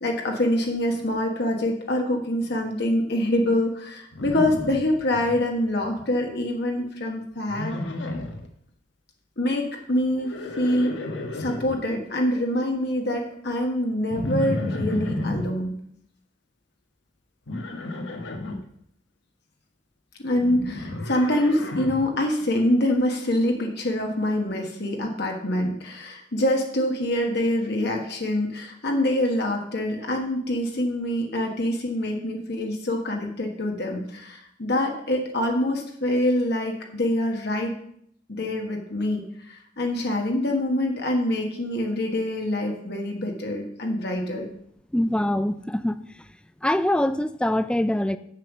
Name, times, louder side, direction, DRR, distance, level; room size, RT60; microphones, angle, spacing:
voice 1, 0.0-7.8 9.4-10.9 11.3-15.7 20.2-37.7 38.3-44.5, left 1 dB, 60° left, 1 dB, 1.4 m, -25 dB
Livestock farm animals working animals, 4.1-5.4 5.7-6.2 7.5-8.5 10.1-11.8 14.1-15.5 17.5-18.6 20.4-22.1, left 2 dB, 80° left, 1.2 m, -32 dB
voice 2, 44.9-46.3 46.6-48.2, left 1 dB, 5° left, 12 dB, 0.4 m, -24 dB
7.4 x 7.0 x 6.1 m, 0.69 s
head